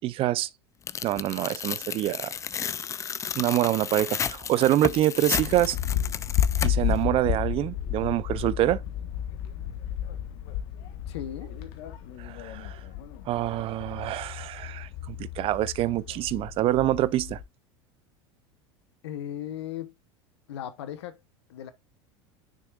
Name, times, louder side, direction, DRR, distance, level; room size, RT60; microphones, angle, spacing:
voice 1, 0.0-0.5 1.0-2.3 3.4-5.8 6.6-8.8 12.2-12.8 13.3-17.4, right 14 dB, 40° right, 0.5 m, -26 dB
Tearing, 0.9-7.0, left 8 dB, 20° left, 0.3 m, -33 dB
sound 1, 5.4-17.4, left 10 dB, 65° left, 1.2 m, -32 dB
voice 2, 11.1-11.5 19.0-19.9 20.5-21.2 21.5-21.7, left 10 dB, 80° left, 0.9 m, -36 dB
6.5 x 6.3 x 2.4 m
supercardioid pair, 105°, 14 cm